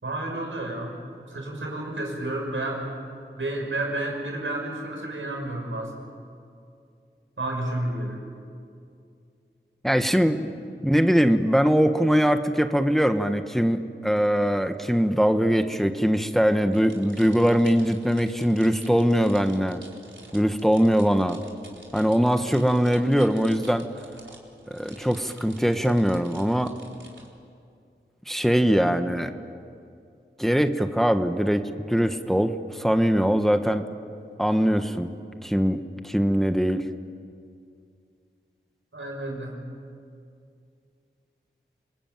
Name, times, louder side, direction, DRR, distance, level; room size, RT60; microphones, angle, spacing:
voice 1, 0.0-0.9 1.3-2.8 3.4-5.9 7.4-8.2 38.9-39.5, right 1 dB, 90° right, 1 dB, 5.9 m, -31 dB
voice 2, 9.8-19.8 20.3-21.4 21.9-23.9 24.7-26.7 28.3-29.3 30.4-33.9 34.4-35.1 35.4-36.8, equal, ahead, 7 dB, 1.3 m, -22 dB
sound 1, 16.7-27.3, right 2 dB, 75° right, 4.2 m, -49 dB
29.0 x 21.0 x 9.2 m, 2.4 s
wide cardioid pair, 45°, 20 cm